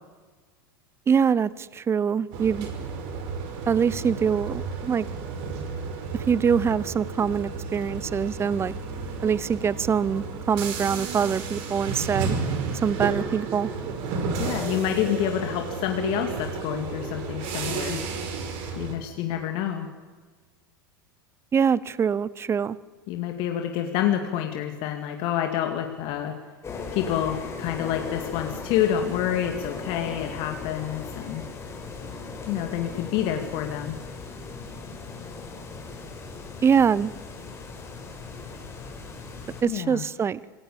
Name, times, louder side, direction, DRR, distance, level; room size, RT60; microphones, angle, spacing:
voice 1, 1.1-2.7 3.7-5.1 6.1-8.7 9.2-12.4 12.8-13.7 21.5-22.8 36.6-37.1 39.6-40.4, right 7 dB, 20° right, 21 dB, 0.8 m, -24 dB
sound 1, 2.3-18.9, right 4 dB, 55° right, 5.2 m, -32 dB
voice 2, 14.4-18.0 18.8-19.9 23.1-26.3 26.9-31.4 32.5-34.0 39.7-40.0, left 10 dB, 50° left, 4 dB, 2.3 m, -28 dB
sound 2, 26.6-39.6, left 4 dB, 25° left, 5.6 m, -38 dB
26.5 x 17.0 x 8.6 m, 1.4 s
figure-of-eight pair, 85°, 12 cm